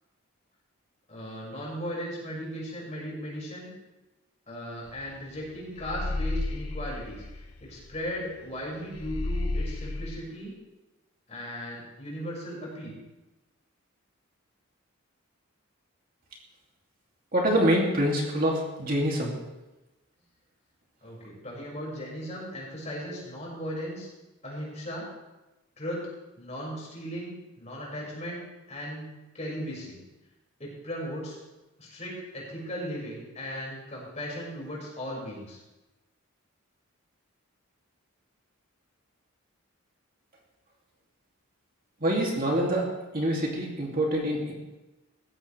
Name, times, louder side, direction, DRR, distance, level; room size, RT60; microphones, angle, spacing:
voice 1, 1.1-3.7 4.5-10.5 11.3-13.0 21.0-24.1 24.4-25.1 25.8-26.1 26.4-29.1 29.3-30.0 30.6-31.4 31.8-35.6, equal, 30° left, -4 dB, 5.9 m, -37 dB
sound 1, 4.9-5.1 5.4-8.2 8.5-8.6 8.9-10.2, left 2 dB, 85° left, 1.1 m, -32 dB
voice 2, 17.3-19.3 42.0-42.9 43.1-44.5, right 1 dB, 40° right, -2 dB, 2.7 m, -25 dB
19.0 x 15.0 x 3.4 m, 1.1 s
head